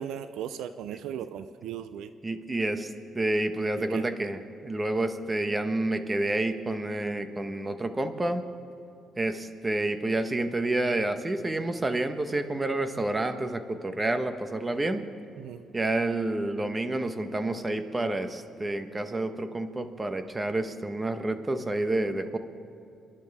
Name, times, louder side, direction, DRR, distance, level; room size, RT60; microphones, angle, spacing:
voice 1, 0.0-2.1 3.8-4.1 15.4-15.6, right 9 dB, 85° right, 11 dB, 0.5 m, -37 dB
voice 2, 2.2-8.5 9.2-15.0 15.7-22.4, right 2 dB, 20° right, 8 dB, 1.2 m, -29 dB
28.5 x 11.0 x 3.6 m, 2.6 s
cardioid pair, 90°, 0 cm